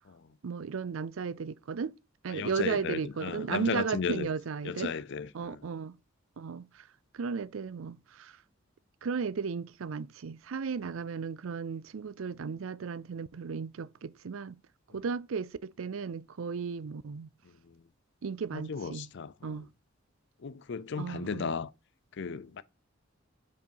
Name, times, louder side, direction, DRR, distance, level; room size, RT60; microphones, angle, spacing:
voice 1, 0.4-1.9 2.2-4.9 5.3-6.0 6.4-6.8 7.1-8.4 9.0-14.6 14.9-17.3 18.2-19.1 19.4-19.7 21.0-21.5, right 5 dB, 85° right, 0.5 m, -35 dB
voice 2, 2.3-4.3 4.6-5.6 17.7-17.8 18.5-19.6 20.4-21.7 22.2-22.6, left 5 dB, 60° left, 0.5 m, -35 dB
7.2 x 5.2 x 4.6 m
head